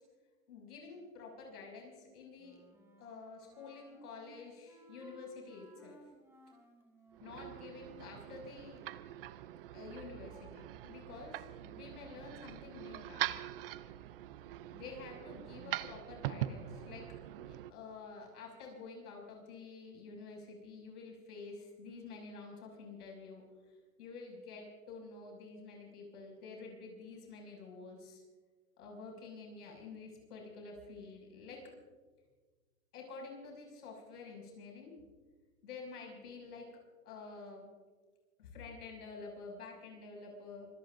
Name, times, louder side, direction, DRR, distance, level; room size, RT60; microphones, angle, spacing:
voice 1, 0.5-2.6 3.0-6.0 7.2-8.8 9.7-13.3 14.7-17.0 17.4-28.2 28.8-31.7 32.9-34.9 35.6-36.7 37.0-37.7 38.4-40.7, left 4 dB, 65° left, 0 dB, 6.5 m, -49 dB
Wind instrument woodwind instrument, 2.4-8.0, right 2 dB, 5° right, 2.1 m, -61 dB
sound 1, 7.1-17.7, right 13 dB, 40° right, 0.6 m, -43 dB
25.5 x 20.5 x 2.6 m, 1.4 s
hypercardioid pair, 140°, 47 cm